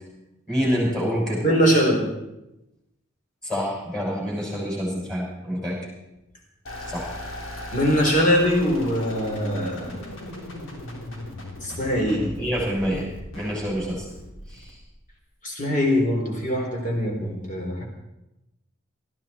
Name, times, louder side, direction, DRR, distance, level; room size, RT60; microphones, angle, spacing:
voice 1, 0.5-1.4 3.4-5.8 6.9-7.1 12.4-13.1 13.3-14.0 14.5-14.7, equal, 5° left, -4 dB, 6.3 m, -26 dB
voice 2, 1.4-2.0 7.7-9.9 11.6-12.3 15.4-17.8, equal, 35° left, 0 dB, 4.0 m, -22 dB
sound 1, 6.7-15.1, left 1 dB, 80° left, 3.5 m, -37 dB
19.5 x 14.0 x 4.5 m, 0.93 s
head